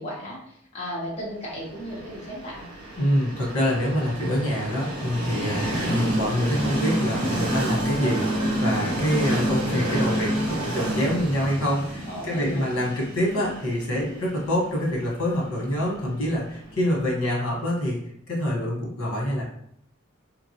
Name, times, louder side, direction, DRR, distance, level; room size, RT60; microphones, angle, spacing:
voice 1, 0.0-2.7 11.9-12.7, equal, 30° left, -6 dB, 1.0 m, -35 dB
Train, 1.7-17.5, right 1 dB, 35° right, 1.2 m, -29 dB
voice 2, 2.9-8.3 8.6-18.0 18.3-19.4, equal, 80° left, -3 dB, 1.1 m, -26 dB
2.8 x 2.5 x 2.8 m, 0.70 s
head